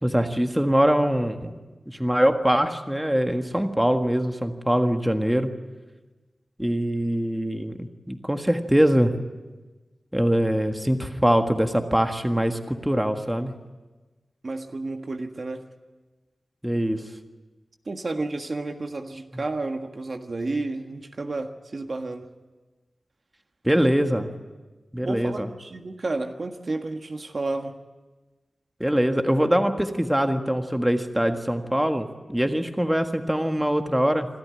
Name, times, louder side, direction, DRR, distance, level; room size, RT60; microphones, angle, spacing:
voice 1, 0.0-1.5 1.9-5.5 6.6-9.1 10.1-13.6 16.6-17.0 23.6-24.3 24.9-25.5 28.8-34.3, equal, 10° right, 6 dB, 1.6 m, -23 dB
voice 2, 14.4-15.7 17.8-22.3 25.0-27.7, right 2 dB, 55° right, 5 dB, 1.6 m, -31 dB
27.0 x 13.0 x 9.8 m, 1.2 s
wide cardioid pair, 70°, 0 cm